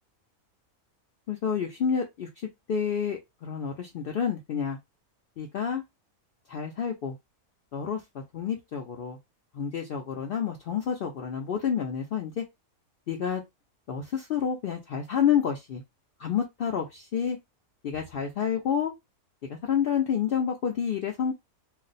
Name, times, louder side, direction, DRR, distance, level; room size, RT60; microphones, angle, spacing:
voice 1, 1.3-2.3 2.7-4.8 5.4-5.8 6.5-7.2 7.7-9.2 9.5-12.4 13.1-13.4 13.9-15.8 16.2-17.4 17.8-18.9 19.5-21.3, left 7 dB, 85° left, 1 dB, 0.5 m, -29 dB
2.4 x 2.0 x 3.9 m, 0.20 s
omnidirectional pair, 1.5 m